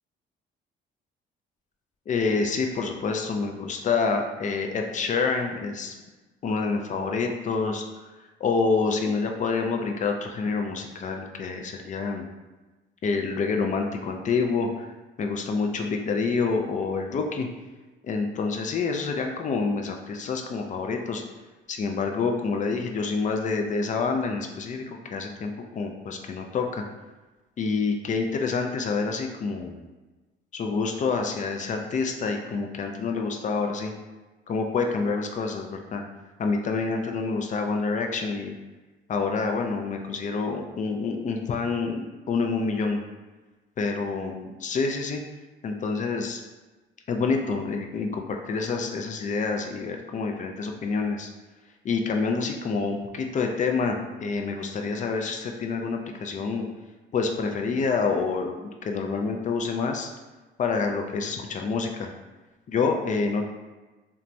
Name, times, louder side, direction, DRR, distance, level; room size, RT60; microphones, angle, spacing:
voice 1, 2.1-5.9 6.4-7.8 8.4-12.3 13.0-14.9 15.2-17.5 18.0-21.2 21.7-26.8 27.6-29.8 30.5-33.9 34.5-36.0 36.4-38.5 39.1-43.0 43.8-45.2 45.6-46.4 47.1-51.3 51.8-56.7 57.1-60.1 60.6-62.1 62.7-63.5, left 4 dB, 40° left, 3 dB, 0.4 m, -27 dB
2.9 x 2.2 x 2.5 m, 1.2 s
cardioid pair, 90°, 20 cm